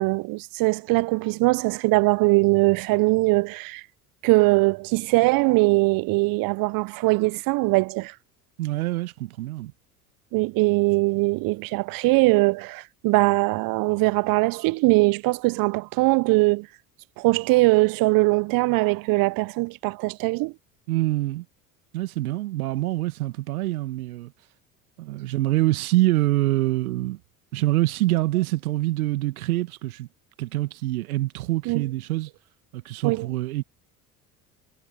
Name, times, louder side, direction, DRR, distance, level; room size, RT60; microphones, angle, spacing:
voice 1, 0.0-3.8 4.2-8.1 10.3-16.7 17.2-20.5 31.7-31.8 33.0-33.3, right 24 dB, 50° right, 0.8 m, -21 dB
voice 2, 8.6-9.7 20.9-21.4 21.9-24.3 25.0-27.2 27.5-30.1 30.4-32.3 32.7-33.6, right 17 dB, 75° right, 1.5 m, -25 dB
figure-of-eight pair, 65°, 44 cm